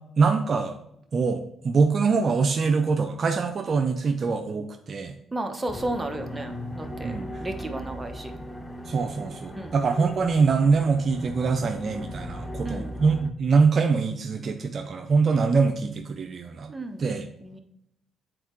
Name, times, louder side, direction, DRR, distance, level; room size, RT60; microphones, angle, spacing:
voice 1, 0.2-0.8 1.1-5.1 7.0-7.3 8.9-16.7 17.0-17.3, right 4 dB, 55° right, 6 dB, 0.6 m, -24 dB
voice 2, 5.3-7.1 7.4-8.3 9.5-9.8 12.6-12.9 16.7-17.1 17.4-17.6, right 1 dB, 20° right, 5 dB, 1.1 m, -33 dB
sound 1, 5.7-13.3, left 1 dB, 20° left, 0.8 m, -38 dB
7.9 x 4.4 x 3.1 m, 0.77 s
supercardioid pair, 60°, 0 cm